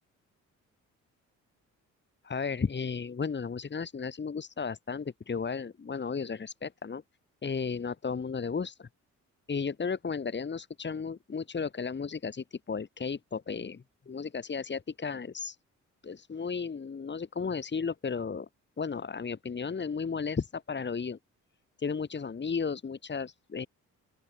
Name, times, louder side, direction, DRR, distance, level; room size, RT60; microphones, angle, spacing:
voice 1, 2.2-7.0 7.4-8.9 9.5-15.6 16.0-18.5 18.8-21.2 21.8-23.7, left 5 dB, 35° left, 5.9 m, -34 dB
open air
cardioid pair, 90°, 30 cm